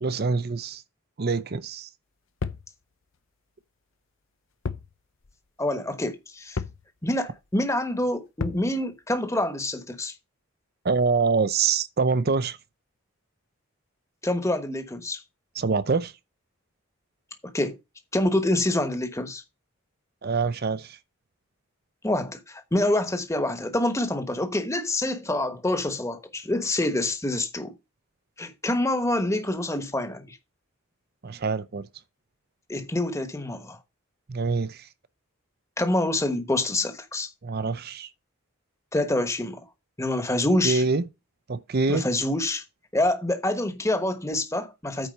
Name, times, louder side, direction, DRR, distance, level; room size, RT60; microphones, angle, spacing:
voice 1, 0.0-0.8 1.2-1.9 10.8-12.6 15.6-16.1 20.2-21.0 31.2-31.9 34.3-34.9 37.4-38.1 40.6-41.1 41.5-42.1, right 4 dB, 45° right, 0.6 m, -25 dB
sound 1, 2.4-2.7 4.6-4.9 5.2-5.3 6.6-6.8 8.4-8.7, left 4 dB, 60° left, 0.6 m, -31 dB
voice 2, 5.6-6.6 7.0-10.1 14.2-15.2 17.5-17.8 18.1-19.4 22.0-27.7 28.4-30.4 32.7-33.8 35.8-37.3 38.9-39.7 40.0-40.8 41.9-42.6 42.9-45.1, left 1 dB, 15° left, 1.1 m, -26 dB
9.1 x 4.3 x 6.7 m
head